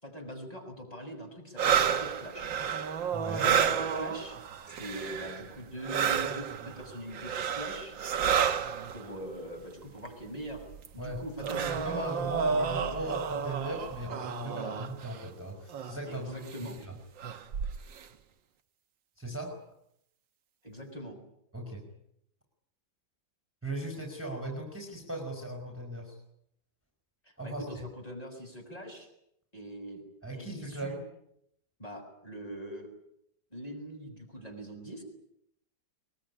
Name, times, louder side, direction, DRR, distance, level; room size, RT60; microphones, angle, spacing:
voice 1, 0.0-2.6 3.4-4.4 4.7-8.0 8.9-10.7 10.9-12.9 14.4-14.8 16.1-16.8 20.6-21.2 27.2-29.1 29.5-30.0 30.3-31.0 31.8-32.9 33.5-35.0, equal, 20° left, 1 dB, 6.8 m, -42 dB
sound 1, 1.6-5.5 5.8-9.1 10.1-10.2 10.5-15.2 15.7-16.0 16.5-16.7 17.2-18.0, right 7 dB, 70° right, 2.0 m, -31 dB
voice 2, 3.1-3.5 11.0-16.4 16.6-17.0 19.2-19.6 21.5-21.8 23.6-26.2 27.4-27.9 30.2-31.0, right 2 dB, 5° right, 1 dB, 5.0 m, -38 dB
23.0 x 22.0 x 9.9 m, 0.77 s
omnidirectional pair, 2.1 m